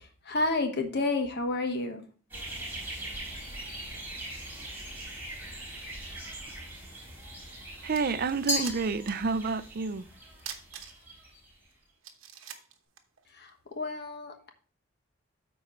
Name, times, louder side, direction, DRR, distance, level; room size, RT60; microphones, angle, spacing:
voice 1, 0.0-2.0 13.3-14.5, left 2 dB, 55° left, 1.3 m, -31 dB
sound 1, 2.3-11.7, right 1 dB, 10° right, 4.5 m, -42 dB
sound 2, 7.5-7.6 7.9-9.3 9.6-9.7 10.4-11.3 11.7-11.8 12.0-13.6, right 8 dB, 80° right, 1.0 m, -44 dB
voice 2, 7.8-10.1, right 4 dB, 45° right, 0.5 m, -29 dB
Glass, 8.5-9.7, left 1 dB, 15° left, 1.2 m, -33 dB
13.0 x 4.5 x 3.1 m
head